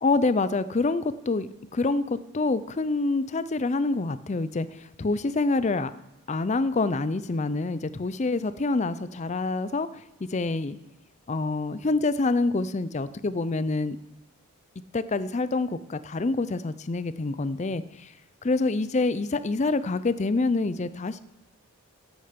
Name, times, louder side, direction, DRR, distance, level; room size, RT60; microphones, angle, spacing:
voice 1, 0.0-5.9 6.3-10.0 10.3-10.8 11.3-14.0 14.9-18.1 18.4-21.2, left 3 dB, 30° left, 14 dB, 0.5 m, -26 dB
14.0 x 8.9 x 5.2 m, 0.93 s
head